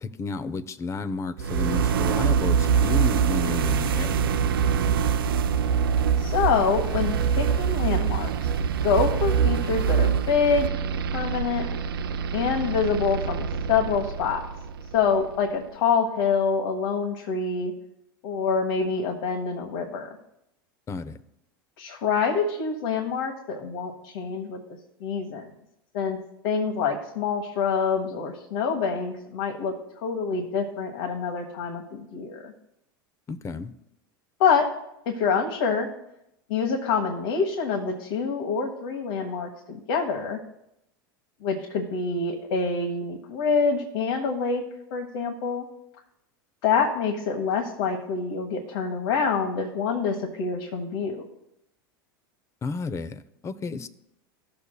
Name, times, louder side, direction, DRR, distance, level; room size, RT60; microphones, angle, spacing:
voice 1, 0.0-4.3 20.9-21.2 33.3-33.7 52.6-53.9, left 4 dB, 25° left, 13 dB, 0.7 m, -32 dB
sound 1, 1.4-15.3, right 7 dB, 85° right, 0.5 m, -24 dB
voice 2, 6.2-8.5 8.8-10.8 11.1-11.7 12.3-14.4 14.9-17.7 18.2-20.1 21.8-24.6 25.0-25.5 25.9-26.2 26.4-29.7 30.0-32.5 34.4-34.7 35.0-35.9 36.5-40.4 41.4-44.6 44.9-45.7 46.6-51.2, left 5 dB, 70° left, 1 dB, 1.3 m, -26 dB
15.5 x 6.9 x 2.3 m, 0.81 s
hypercardioid pair, 95°, 12 cm